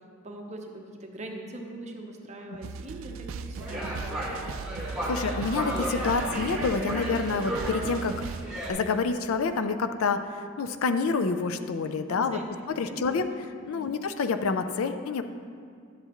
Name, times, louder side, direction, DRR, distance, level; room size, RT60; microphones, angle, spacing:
voice 1, 0.2-4.5 12.1-12.5 12.9-13.2 13.7-13.9, right 1 dB, 35° right, 2 dB, 0.8 m, -42 dB
sound 1, 2.6-8.5, right 5 dB, 70° right, 0.3 m, -37 dB
sound 2, 3.6-8.7, equal, 5° right, 1.4 m, -33 dB
voice 2, 5.1-8.3 8.7-12.4 12.8-13.3 13.7-15.2, left 4 dB, 75° left, 9 dB, 0.4 m, -28 dB
11.0 x 7.9 x 3.0 m, 2.2 s
head